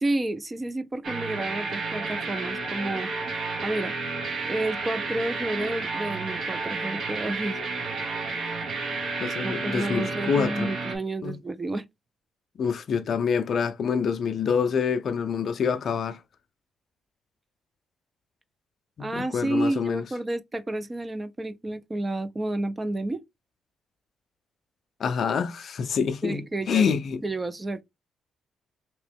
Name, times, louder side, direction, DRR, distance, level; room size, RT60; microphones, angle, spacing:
voice 1, 0.0-3.1 3.6-3.9 4.5-7.6 9.4-11.8 19.0-23.2 26.2-26.9 27.2-27.8, right 2 dB, 20° right, 0.5 m, -30 dB
sound 1, 1.0-11.0, right 3 dB, 55° right, 1.0 m, -31 dB
voice 2, 9.2-10.7 11.2-11.4 12.6-16.2 19.0-20.1 25.0-27.2, left 6 dB, 55° left, 0.4 m, -26 dB
2.9 x 2.9 x 3.3 m
cardioid pair, 90°, 0 cm